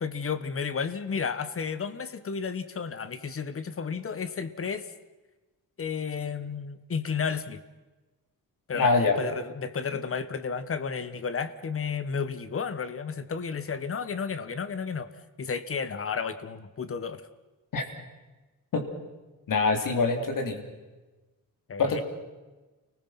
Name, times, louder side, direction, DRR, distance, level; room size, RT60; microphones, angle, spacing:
voice 1, 0.0-4.9 5.8-7.6 8.7-15.1 15.4-17.2 21.7-22.0, left 6 dB, 40° left, 14 dB, 1.4 m, -32 dB
voice 2, 8.7-9.2 17.7-17.8 18.7-18.8 19.5-20.6 21.8-22.0, left 4 dB, 65° left, 5 dB, 3.5 m, -24 dB
29.5 x 20.0 x 5.9 m, 1.2 s
cardioid pair, 120°, 36 cm